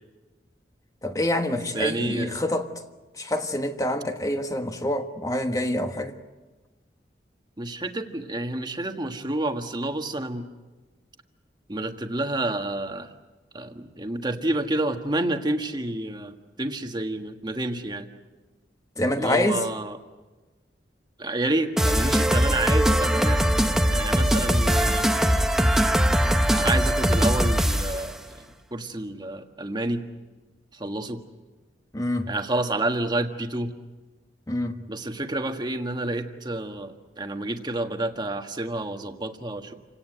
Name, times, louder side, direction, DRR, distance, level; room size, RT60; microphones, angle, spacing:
voice 1, 1.0-2.7 3.1-6.1 19.0-19.6 31.9-32.3 34.5-34.8, left 1 dB, 20° left, 1.4 m, -26 dB
voice 2, 1.5-2.4 7.6-10.4 11.7-13.1 13.5-18.1 19.2-20.0 21.2-23.4 23.9-25.1 26.5-30.0 30.7-31.2 32.3-33.7 34.9-39.7, right 2 dB, 25° right, 1.6 m, -29 dB
sound 1, 21.8-28.1, equal, 5° right, 1.1 m, -21 dB
28.5 x 17.5 x 9.2 m
head